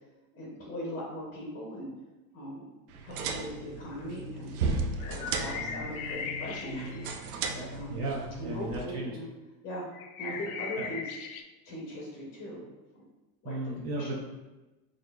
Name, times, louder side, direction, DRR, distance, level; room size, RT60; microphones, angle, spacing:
voice 1, 0.3-1.9 2.3-2.7 3.0-4.6 5.0-8.0 8.4-9.3 9.6-9.8 10.2-11.0 11.6-13.0 13.4-13.5 14.0-14.2, equal, 25° left, -3 dB, 0.6 m, -39 dB
sound 1, 2.9-8.9, right 4 dB, 85° right, 0.6 m, -35 dB
sound 2, 5.0-7.4 9.9-11.4, left 6 dB, 75° left, 0.6 m, -39 dB
voice 2, 5.4-5.9 7.9-9.1 10.3-10.5 10.8-10.9 13.4-14.2, right 2 dB, 40° right, -3 dB, 0.5 m, -36 dB
6.2 x 2.4 x 2.3 m, 1.1 s
supercardioid pair, 165°, 43 cm